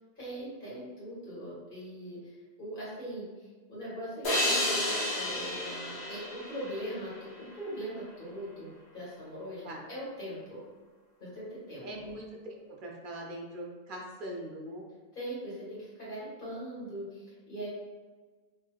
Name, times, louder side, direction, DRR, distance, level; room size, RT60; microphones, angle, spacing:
voice 1, 0.1-10.6 11.2-12.0 15.1-17.7, equal, 55° left, -8 dB, 1.6 m, -41 dB
sound 1, 4.2-7.6, left 1 dB, 90° left, 1.2 m, -31 dB
voice 2, 11.8-14.8, right 1 dB, 55° right, -1 dB, 0.8 m, -41 dB
3.3 x 2.9 x 2.3 m, 1.4 s
omnidirectional pair, 1.1 m